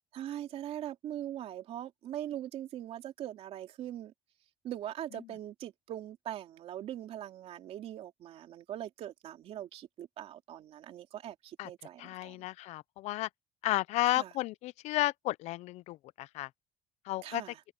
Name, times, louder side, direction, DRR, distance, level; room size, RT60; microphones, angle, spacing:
voice 1, 0.0-4.1 4.6-12.5 14.1-14.3 17.2-17.6, right 11 dB, 65° right, 3.1 m, -41 dB
voice 2, 12.0-13.3 13.6-16.5 17.1-17.4, left 17 dB, 80° left, 0.5 m, -33 dB
open air
cardioid pair, 140°, 11 cm